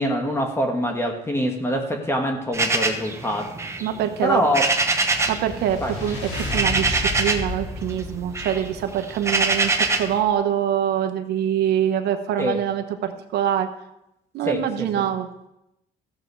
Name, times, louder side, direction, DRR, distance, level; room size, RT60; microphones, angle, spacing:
voice 1, 0.0-3.5 4.2-4.6 5.8-5.9 12.4-12.6 14.5-15.0, equal, 15° left, 2 dB, 1.5 m, -24 dB
sound 1, 2.5-5.5 5.7-7.6 7.9-10.2, right 3 dB, 15° right, 1.1 m, -24 dB
voice 2, 3.8-4.4 5.3-13.7 14.3-15.3, right 10 dB, 75° right, 7 dB, 1.2 m, -24 dB
sound 2, 4.6-10.0, left 2 dB, 75° left, 3.5 m, -33 dB
14.5 x 7.6 x 4.7 m, 0.84 s
cardioid pair, 110°, 17 cm